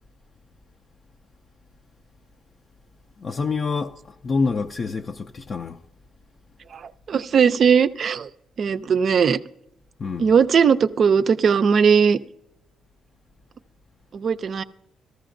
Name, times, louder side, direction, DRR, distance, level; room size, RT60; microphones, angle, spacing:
voice 1, 3.2-5.8 10.0-10.3, left 4 dB, 45° left, 0.4 m, -27 dB
voice 2, 6.7-8.3 8.6-9.4 10.2-12.2 14.1-14.6, right 6 dB, 55° right, 0.4 m, -19 dB
14.5 x 14.0 x 2.5 m
cardioid pair, 90°, 0 cm